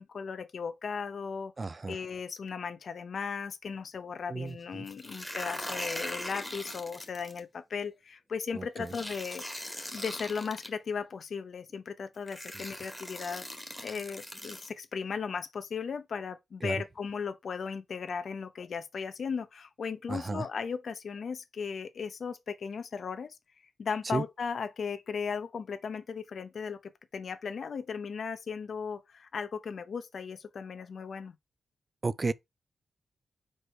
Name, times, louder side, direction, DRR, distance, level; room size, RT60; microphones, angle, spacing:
voice 1, 0.0-1.5 1.9-9.4 9.9-13.4 13.8-23.4 23.8-31.3, left 6 dB, 65° left, 0.8 m, -36 dB
voice 2, 1.6-2.0 4.3-4.5 8.6-8.9 16.6-16.8 20.1-20.5 24.1-24.2 32.0-32.3, right 3 dB, 35° right, 0.4 m, -32 dB
sound 1, 4.9-7.4 8.9-10.7 11.7-11.8 12.3-14.7, equal, 5° left, 1.8 m, -40 dB
4.7 x 4.5 x 4.5 m
cardioid pair, 60°, 0 cm